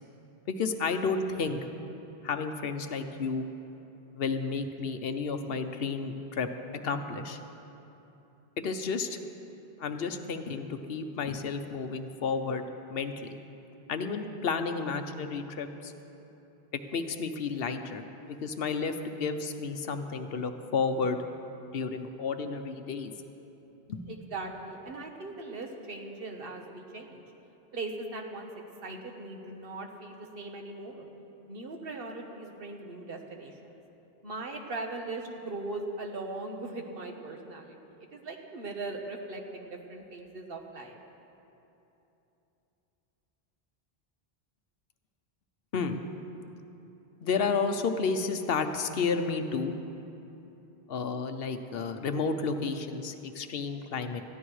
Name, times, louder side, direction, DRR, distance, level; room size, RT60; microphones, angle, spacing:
voice 1, 0.5-1.6 2.2-3.5 4.1-6.5 6.8-7.4 8.6-9.2 9.8-12.6 12.9-13.1 13.9-15.9 16.7-21.2 21.7-23.1 23.9-24.0 45.7-46.0 47.2-49.7 50.9-54.2, left 4 dB, 70° left, 8 dB, 0.9 m, -31 dB
voice 2, 24.1-27.2 27.7-28.5 28.8-31.1 31.5-33.8 34.2-37.8 38.1-41.0, right 2 dB, 65° right, 2 dB, 1.3 m, -39 dB
19.5 x 14.0 x 3.2 m, 3.0 s
omnidirectional pair, 1.0 m